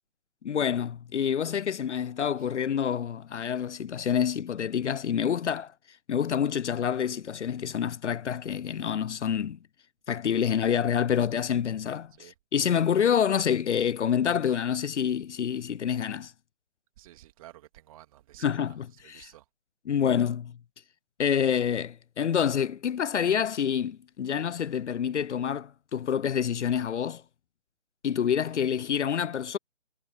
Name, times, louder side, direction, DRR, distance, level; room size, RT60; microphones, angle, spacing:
voice 1, 0.4-5.7 6.1-9.6 10.1-16.3 18.4-19.3 19.9-20.5 21.2-27.2 28.0-29.6, left 8 dB, 70° left, 0.6 m, -27 dB
voice 2, 17.0-18.7 19.0-19.4, right 14 dB, 30° right, 3.0 m, -52 dB
figure-of-eight pair, 150°, 36 cm